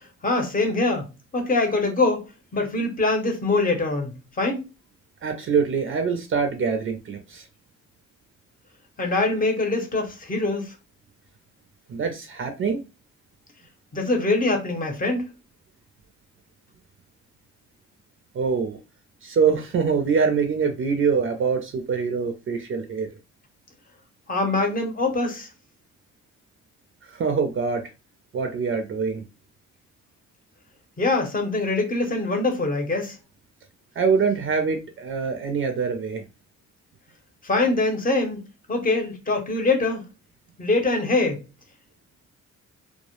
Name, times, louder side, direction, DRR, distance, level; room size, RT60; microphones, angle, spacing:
voice 1, 0.2-4.1 4.4-4.7 9.0-10.7 13.9-15.2 24.3-25.5 31.0-33.2 37.4-38.4 38.7-40.1 40.6-41.4, left 2 dB, 30° left, 0.8 m, -23 dB
voice 2, 5.2-7.5 11.9-12.8 18.3-18.8 19.2-23.1 27.1-27.9 28.3-29.2 34.0-36.2, right 5 dB, 45° right, 0.5 m, -24 dB
2.1 x 2.0 x 2.9 m
cardioid pair, 90°, 30 cm